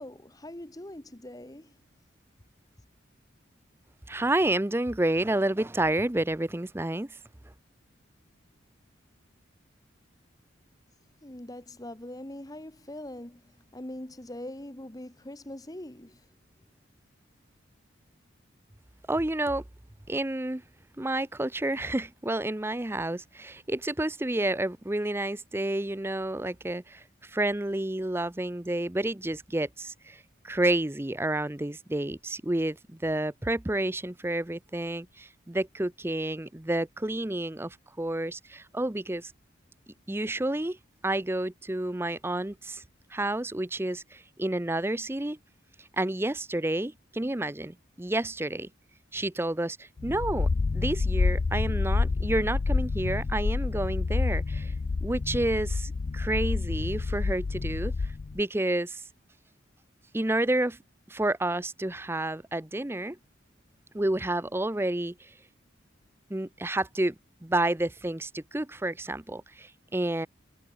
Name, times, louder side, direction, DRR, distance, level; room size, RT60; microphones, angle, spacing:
voice 1, 0.0-1.7 11.2-16.2, left 1 dB, 20° left, 1.3 m, -42 dB
voice 2, 4.1-7.2 19.1-19.6 20.1-20.6 21.0-39.3 40.1-40.8 41.0-42.8 43.1-45.4 45.8-48.7 49.1-54.7 55.0-57.9 58.3-59.0 60.1-60.8 61.1-63.2 63.9-65.3 66.3-67.1 67.4-70.3, right 1 dB, 10° right, 0.6 m, -30 dB
sound 1, 50.0-58.4, left 4 dB, 40° left, 0.3 m, -28 dB
head